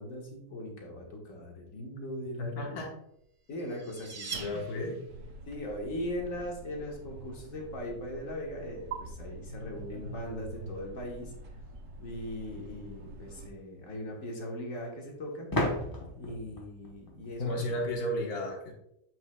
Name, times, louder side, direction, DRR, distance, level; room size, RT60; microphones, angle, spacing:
voice 1, 0.0-2.8 3.5-5.0 5.5-11.3 12.0-15.5 16.1-17.8, left 1 dB, 55° left, -1 dB, 1.8 m, -39 dB
voice 2, 2.4-2.9 4.3-5.0 17.4-18.7, left 1 dB, 75° left, 1 dB, 1.7 m, -33 dB
sound 1, 3.2-5.3, right 5 dB, 75° right, 1.4 m, -42 dB
sound 2, 5.1-13.5, right 2 dB, 60° right, 1.1 m, -45 dB
sound 3, 15.5-18.2, left 1 dB, 20° left, 0.7 m, -35 dB
7.7 x 6.0 x 2.2 m, 0.77 s
omnidirectional pair, 1.7 m